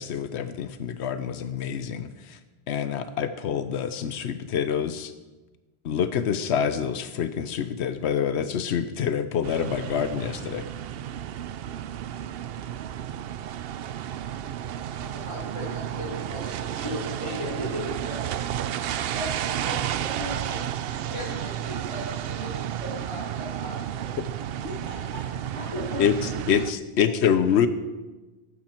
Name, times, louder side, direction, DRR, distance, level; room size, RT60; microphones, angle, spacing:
voice 1, 0.0-2.4 2.7-5.1 5.8-10.6 26.0-26.1 26.5-27.7, left 8 dB, 90° left, 11 dB, 1.0 m, -26 dB
sound 1, 9.4-26.7, right 10 dB, 70° right, 0.7 m, -32 dB
voice 2, 14.9-18.5 19.1-20.6 20.9-24.1 25.6-26.0, left 1 dB, 25° left, -8 dB, 4.0 m, -37 dB
voice 3, 24.6-25.5 27.1-27.7, equal, 85° right, 0 dB, 2.7 m, -42 dB
16.0 x 12.0 x 4.4 m, 1.2 s
omnidirectional pair, 1.1 m